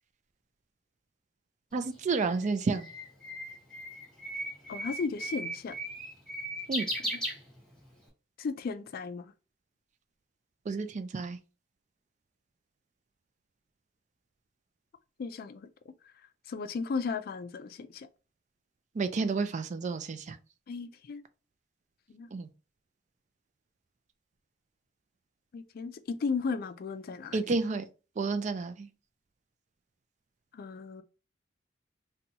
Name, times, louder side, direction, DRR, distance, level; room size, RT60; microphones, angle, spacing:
voice 1, 1.7-2.9 6.7-6.9 10.7-11.4 18.9-20.4 22.3-22.5 27.3-27.8 28.2-28.9, right 4 dB, 40° right, 0.4 m, -30 dB
Bird, 1.8-8.0, equal, 5° left, 1.2 m, -37 dB
voice 2, 4.7-5.8 7.1-7.2 8.4-9.3 15.2-15.7 16.5-18.1 20.7-21.2 22.1-22.3 25.5-27.4 30.5-31.0, left 4 dB, 55° left, 0.4 m, -35 dB
4.0 x 2.3 x 2.8 m
head